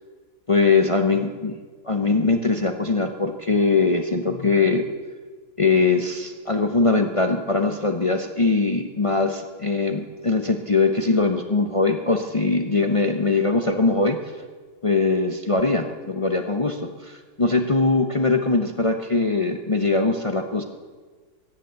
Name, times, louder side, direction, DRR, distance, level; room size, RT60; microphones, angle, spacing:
voice 1, 0.5-1.6 1.8-4.8 5.6-14.2 14.8-20.6, left 3 dB, 40° left, 5 dB, 0.4 m, -21 dB
15.5 x 10.5 x 8.2 m, 1.4 s
omnidirectional pair, 1.9 m